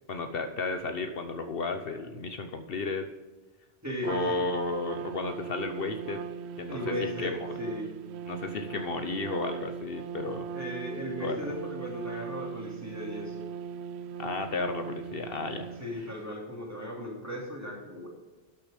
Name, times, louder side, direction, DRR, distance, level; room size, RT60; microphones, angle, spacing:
voice 1, 0.1-3.0 4.0-6.2 6.6-6.9 7.2-7.5 8.3-10.5 11.2-11.4 14.2-15.7, left 3 dB, 65° left, 7 dB, 1.0 m, -33 dB
voice 2, 3.8-4.4 6.7-7.9 10.5-13.4 15.8-18.1, equal, 15° right, -2 dB, 2.8 m, -36 dB
Trumpet, 4.0-16.2, right 7 dB, 80° right, 0.8 m, -39 dB
12.0 x 6.7 x 5.1 m, 1.2 s
omnidirectional pair, 1.1 m